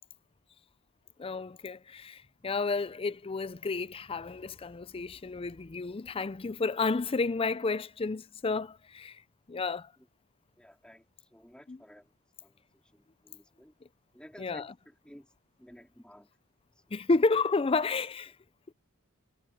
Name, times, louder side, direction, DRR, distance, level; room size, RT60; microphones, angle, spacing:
voice 1, 1.2-9.2 9.5-9.9 11.7-11.8 14.4-14.7 16.9-18.3, left 3 dB, 25° left, 0.5 m, -31 dB
voice 2, 10.6-11.0 11.3-12.1 12.4-12.6 12.9-13.7 14.1-15.3 15.6-16.3, equal, 5° left, 3.4 m, -54 dB
head